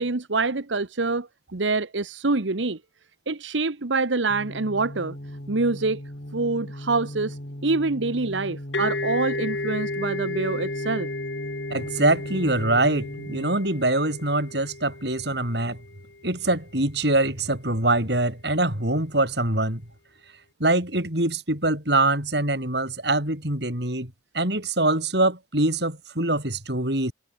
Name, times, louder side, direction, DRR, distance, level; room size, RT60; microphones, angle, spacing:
voice 1, 0.0-2.8 3.3-5.1 5.5-6.0 6.3-11.1, right 3 dB, 85° right, 1.2 m, -26 dB
sound 1, 4.3-13.7, equal, 50° left, 4.1 m, -38 dB
sound 2, 8.7-16.3, left 2 dB, 75° left, 3.3 m, -33 dB
voice 2, 11.7-15.8 16.2-19.8 20.6-27.1, right 2 dB, 65° right, 6.8 m, -24 dB
head